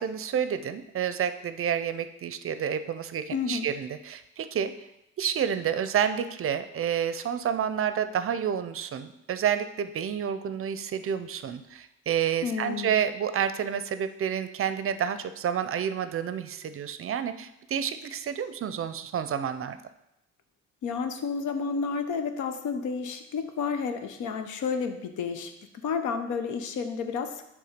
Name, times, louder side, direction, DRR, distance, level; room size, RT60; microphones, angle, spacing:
voice 1, 0.0-4.7 5.2-19.8, right 8 dB, 45° right, 11 dB, 0.5 m, -29 dB
voice 2, 3.3-3.7 12.4-12.9 20.8-25.5 25.8-27.4, left 5 dB, 80° left, 7 dB, 0.8 m, -31 dB
6.8 x 3.6 x 5.1 m, 0.87 s
cardioid pair, 90°, 30 cm